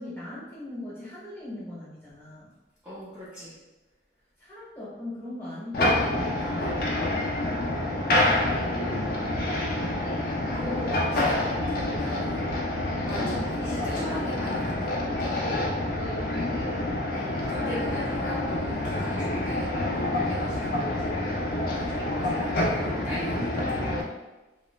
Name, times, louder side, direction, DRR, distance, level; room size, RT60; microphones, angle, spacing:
voice 1, 0.0-2.5 4.4-7.1 13.2-13.4 16.2-17.1, left 1 dB, 15° left, -8 dB, 1.0 m, -40 dB
voice 2, 2.8-3.6 8.1-9.1 9.5-12.5 13.0-15.3 17.1-21.1 21.4-23.8, left 1 dB, 10° right, -13 dB, 0.5 m, -40 dB
sound 1, 5.7-24.0, left 1 dB, 50° left, 0.4 m, -27 dB
2.9 x 2.1 x 2.3 m, 1.1 s
head